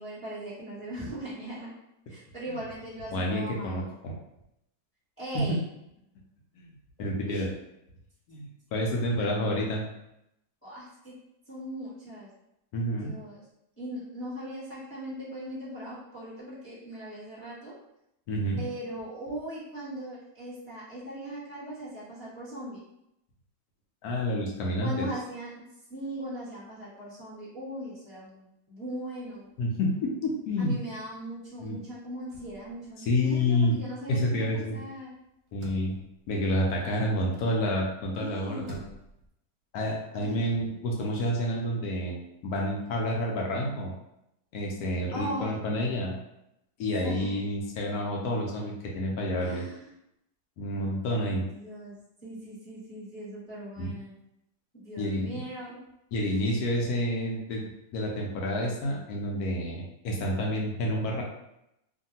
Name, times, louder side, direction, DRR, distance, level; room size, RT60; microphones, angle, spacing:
voice 1, 0.0-1.7 2.1-3.8 5.2-5.6 7.3-7.4 9.1-9.3 10.6-11.2 11.5-12.3 12.9-13.4 13.8-17.7 18.6-22.8 24.8-25.6 25.9-29.5 30.6-35.1 38.1-38.8 40.2-40.6 45.1-45.5 47.0-47.3 49.4-49.9 51.2-51.9 52.2-54.1 54.8-55.8 56.1-56.5, right 1 dB, 10° left, -11 dB, 1.1 m, -39 dB
voice 2, 3.1-4.1 5.3-5.6 6.5-6.7 7.0-7.5 8.3-9.8 12.7-13.1 18.3-18.6 24.0-25.1 29.6-30.8 31.6-31.8 33.0-33.7 34.1-34.8 35.5-36.0 36.3-38.8 39.7-43.9 44.5-46.2 46.8-49.6 50.6-51.4 53.8-53.9 55.0-55.3 56.1-57.6 57.9-61.2, left 1 dB, 70° left, -1 dB, 1.0 m, -29 dB
sound 1, 29.3-30.5 30.8-30.9 31.2-37.6 38.1-39.3, equal, 60° right, 0.9 m, -51 dB
2.7 x 2.5 x 2.7 m, 0.84 s
omnidirectional pair, 1.8 m